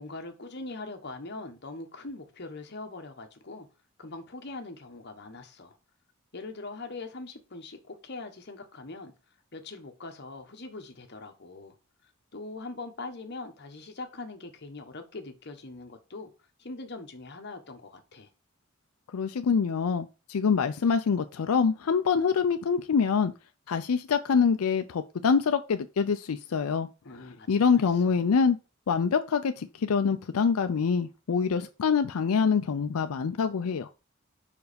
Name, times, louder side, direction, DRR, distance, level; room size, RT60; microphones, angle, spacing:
voice 1, 0.0-3.7 4.0-5.8 6.3-9.1 9.5-11.7 12.3-16.3 16.6-18.3 27.0-28.2, left 3 dB, 50° left, 1.1 m, -42 dB
voice 2, 19.1-23.3 23.7-26.9 27.5-28.6 28.9-33.9, left 6 dB, 85° left, 0.5 m, -25 dB
5.3 x 4.7 x 5.1 m
head